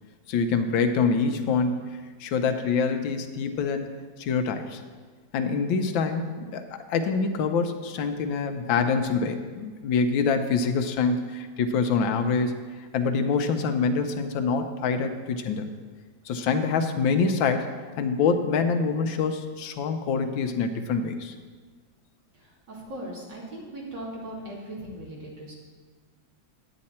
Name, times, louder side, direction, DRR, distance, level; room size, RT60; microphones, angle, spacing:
voice 1, 0.3-3.9 4.2-4.8 5.3-15.7 16.3-17.6 18.0-21.3, left 5 dB, 85° left, 7 dB, 1.5 m, -25 dB
voice 2, 22.3-25.5, right 1 dB, 65° right, -4 dB, 2.8 m, -39 dB
9.5 x 9.0 x 4.2 m, 1.5 s
omnidirectional pair, 2.1 m